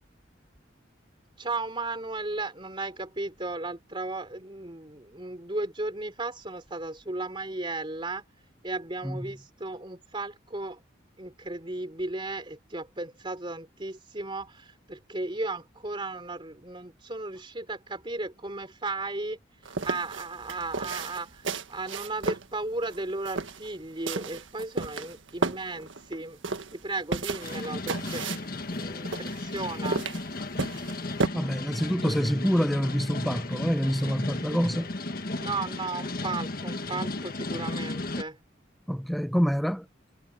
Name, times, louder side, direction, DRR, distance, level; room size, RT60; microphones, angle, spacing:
voice 1, 1.4-8.2 8.6-10.8 11.2-19.4 19.8-26.4 26.7-30.0 35.4-38.4, right 2 dB, 25° right, 3.4 m, -35 dB
voice 2, 9.0-9.3 31.3-34.9 38.9-39.9, equal, ahead, 0.7 m, -26 dB
sound 1, 19.6-31.3, right 3 dB, 80° right, 1.6 m, -33 dB
sound 2, 27.4-38.2, left 2 dB, 50° left, 1.6 m, -34 dB
head